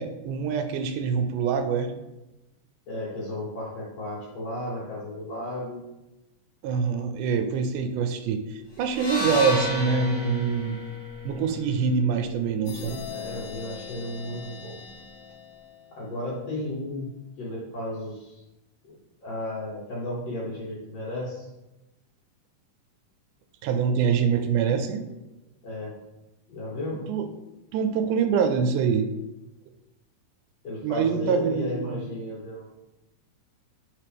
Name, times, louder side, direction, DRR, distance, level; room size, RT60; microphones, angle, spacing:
voice 1, 0.0-1.9 6.6-10.8 11.2-13.0 23.6-25.0 27.1-27.3 27.7-29.1 30.8-32.0, right 6 dB, 85° right, 6 dB, 2.0 m, -25 dB
voice 2, 2.9-5.8 13.1-14.8 15.9-17.1 17.4-18.4 18.8-18.9 19.2-21.5 25.6-26.0 26.5-27.1 30.6-32.6, left 1 dB, 55° left, -6 dB, 3.0 m, -34 dB
sound 1, 8.9-13.1, left 2 dB, 35° left, 1.4 m, -32 dB
sound 2, 12.7-16.2, left 6 dB, 90° left, 2.2 m, -41 dB
7.5 x 4.3 x 3.4 m, 0.98 s
omnidirectional pair, 3.6 m